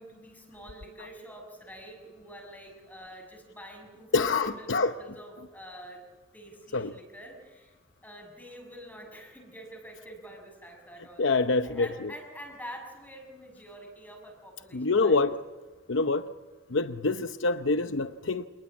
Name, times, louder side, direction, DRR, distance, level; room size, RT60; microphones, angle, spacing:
voice 1, 0.0-6.1 6.3-7.8 8.0-11.3 11.6-15.2, equal, 10° left, 2 dB, 6.6 m, -46 dB
voice 2, 4.1-4.9 6.7-6.9 11.2-12.1 14.7-15.4 15.9-16.3 16.7-18.5, left 3 dB, 90° left, 10 dB, 0.8 m, -26 dB
28.0 x 19.5 x 8.6 m, 1.3 s
head